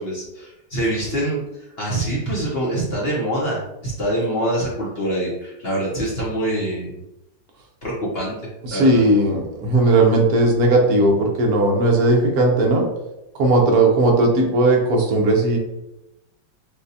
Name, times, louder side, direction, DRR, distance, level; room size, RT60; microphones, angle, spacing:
voice 1, 0.0-7.0 7.8-8.3 8.7-9.0, right 1 dB, 45° left, -5 dB, 0.9 m, -25 dB
voice 2, 8.7-12.9 13.3-15.6, right 2 dB, 60° right, 0 dB, 1.2 m, -17 dB
6.6 x 2.3 x 2.7 m, 0.91 s
omnidirectional pair, 2.0 m